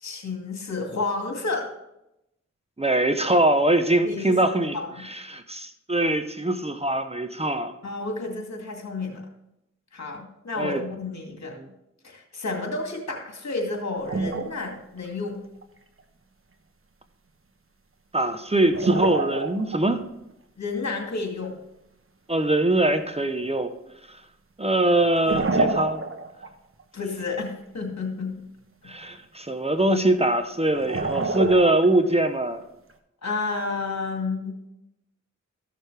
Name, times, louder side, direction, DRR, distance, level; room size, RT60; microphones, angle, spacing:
voice 1, 0.0-1.7 4.0-4.3 4.7-4.9 7.8-9.2 9.9-11.6 12.0-15.4 20.6-21.6 26.9-28.4 33.2-34.6, left 3 dB, 65° left, 1 dB, 2.4 m, -31 dB
voice 2, 2.8-7.7 10.6-10.8 11.6-11.7 18.1-20.0 22.3-23.7 24.1-24.2 24.6-26.0 28.8-32.6, right 1 dB, 20° right, 8 dB, 0.9 m, -23 dB
sound 1, 14.1-14.7 15.1-15.2 15.6-15.7 18.6-20.0 23.4-23.5 25.0-26.5 26.8-26.9 30.7-32.2, right 3 dB, 45° right, 1.1 m, -27 dB
14.0 x 6.5 x 3.4 m, 0.85 s
cardioid pair, 45°, 30 cm